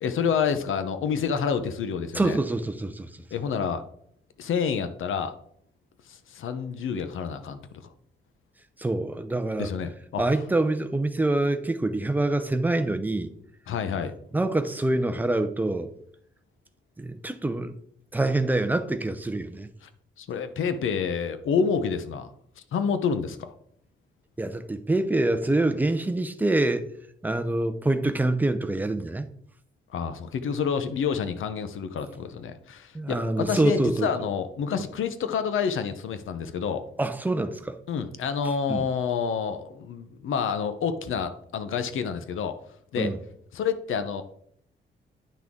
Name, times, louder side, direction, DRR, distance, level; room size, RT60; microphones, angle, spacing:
voice 1, 0.0-2.4 3.3-3.8 4.4-5.3 6.1-7.6 9.6-10.2 13.7-14.1 19.8-19.9 20.2-22.3 22.7-23.5 29.9-36.9 37.9-42.6 42.9-43.1 43.5-44.2, left 6 dB, 85° left, 0.8 m, -28 dB
voice 2, 2.1-3.1 8.8-9.7 10.2-13.3 14.3-15.9 17.0-17.8 18.1-19.7 24.4-26.9 27.2-29.3 32.9-34.1 37.0-37.8 38.7-38.9 43.0-43.2, right 2 dB, 10° right, 0.6 m, -25 dB
10.5 x 6.0 x 3.7 m
wide cardioid pair, 180°, 20 cm